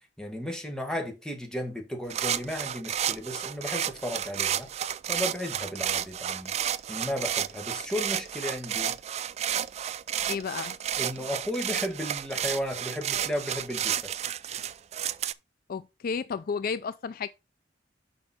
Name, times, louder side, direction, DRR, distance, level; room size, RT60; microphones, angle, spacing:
voice 1, 0.2-4.7 5.1-6.5 6.9-9.0 11.0-14.2, equal, 5° left, 1.7 m, -34 dB
sound 1, 2.1-15.3, right 10 dB, 40° right, 0.3 m, -31 dB
voice 2, 10.3-10.8 15.7-17.3, left 6 dB, 55° left, 0.4 m, -32 dB
6.7 x 5.2 x 4.3 m
head